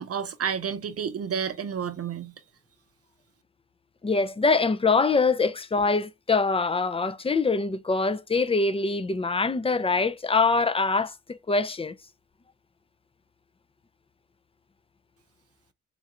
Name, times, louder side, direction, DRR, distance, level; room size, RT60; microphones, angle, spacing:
voice 1, 0.0-2.3, right 7 dB, 50° right, 0.7 m, -30 dB
voice 2, 4.0-11.9, left 4 dB, 20° left, 0.5 m, -24 dB
3.8 x 2.3 x 4.1 m
supercardioid pair, 60°, 30 cm